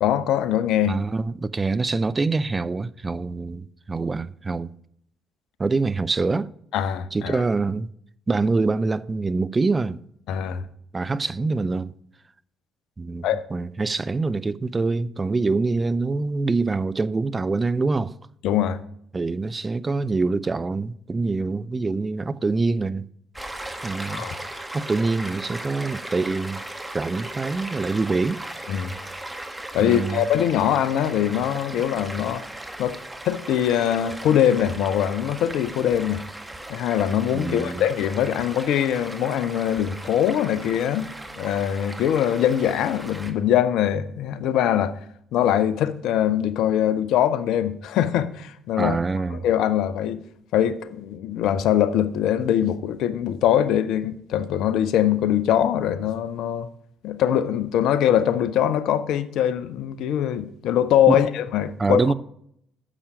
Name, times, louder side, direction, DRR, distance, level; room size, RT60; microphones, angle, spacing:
voice 1, 0.0-1.0 6.7-7.4 10.3-10.6 13.2-13.4 18.4-18.8 24.1-24.3 28.7-28.9 29.7-32.5 32.8-33.0 33.2-36.2 36.7-44.9 45.3-49.0 49.4-50.2 50.5-56.7 57.0-62.0, left 10 dB, 65° left, 0.7 m, -22 dB
voice 2, 0.9-4.7 5.6-6.5 7.1-7.9 8.3-10.0 10.9-11.9 13.0-13.2 13.5-18.1 19.1-23.0 23.8-24.3 24.7-26.6 26.9-28.4 29.8-30.2 37.3-37.8 48.8-49.5 61.1-61.2 61.8-62.1, right 3 dB, 25° right, 0.4 m, -25 dB
Stream, 23.3-43.3, right 1 dB, 10° right, 1.6 m, -37 dB
10.0 x 7.1 x 5.1 m
hypercardioid pair, 50°, 0 cm